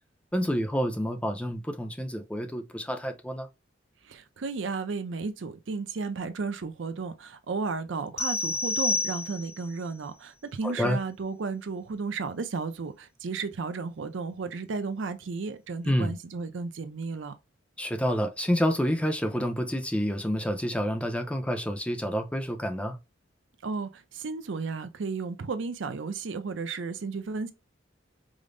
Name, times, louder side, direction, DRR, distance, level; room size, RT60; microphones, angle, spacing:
voice 1, 0.3-3.5 10.6-11.0 15.8-16.2 17.8-23.0, equal, 5° left, 0.5 m, -28 dB
voice 2, 4.0-17.3 23.6-27.5, right 4 dB, 70° right, 0.5 m, -33 dB
sound 1, 8.2-9.7, left 3 dB, 35° left, 0.9 m, -29 dB
5.0 x 2.0 x 2.5 m
head